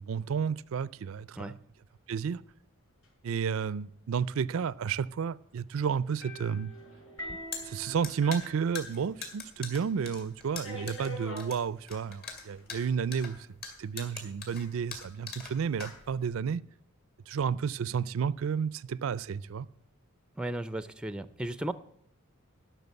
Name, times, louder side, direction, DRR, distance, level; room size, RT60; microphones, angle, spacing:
voice 1, 0.0-1.6 2.1-2.4 3.2-6.7 7.6-13.5 13.8-16.6 17.3-19.7, right 6 dB, 65° right, 0.4 m, -31 dB
sound 1, 6.2-9.4 9.7-9.8 10.6-11.5 12.4-12.9, equal, 70° left, 5.8 m, -44 dB
sound 2, 7.2-16.4, left 5 dB, 45° left, 2.3 m, -43 dB
voice 2, 20.4-21.7, right 1 dB, 5° right, 0.4 m, -35 dB
12.0 x 6.1 x 8.0 m
head